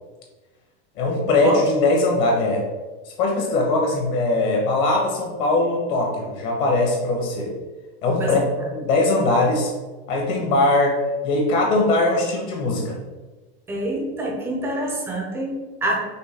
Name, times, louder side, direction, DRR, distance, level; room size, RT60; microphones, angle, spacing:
voice 1, 0.9-2.6 3.0-7.5 8.0-8.4 8.7-9.7 10.1-11.0 11.2-13.0, left 2 dB, 40° left, 0 dB, 1.0 m, -20 dB
voice 2, 13.7-16.0, right 1 dB, 10° right, -1 dB, 0.5 m, -26 dB
5.4 x 2.2 x 4.1 m, 1.2 s
supercardioid pair, 170°, 31 cm